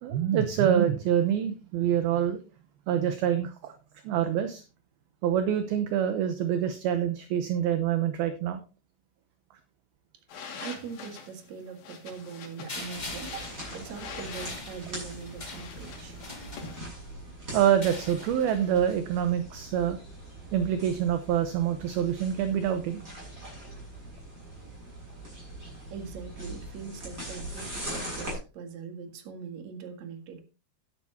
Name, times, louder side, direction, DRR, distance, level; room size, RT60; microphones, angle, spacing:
voice 1, 0.0-2.4 2.9-3.7 4.0-4.6 5.2-8.6 17.5-20.0 20.5-23.1, right 9 dB, 75° right, 8 dB, 2.5 m, -26 dB
sound 1, 10.3-16.8, left 5 dB, 75° left, 4.4 m, -45 dB
voice 2, 10.3-16.2 25.6-30.4, right 6 dB, 50° right, 5 dB, 2.6 m, -42 dB
sound 2, 12.7-17.1 17.7-19.0, left 2 dB, 55° left, 0.5 m, -43 dB
sound 3, 12.9-28.3, right 1 dB, 20° right, 7.4 m, -42 dB
12.0 x 11.5 x 2.8 m, 0.32 s
omnidirectional pair, 5.0 m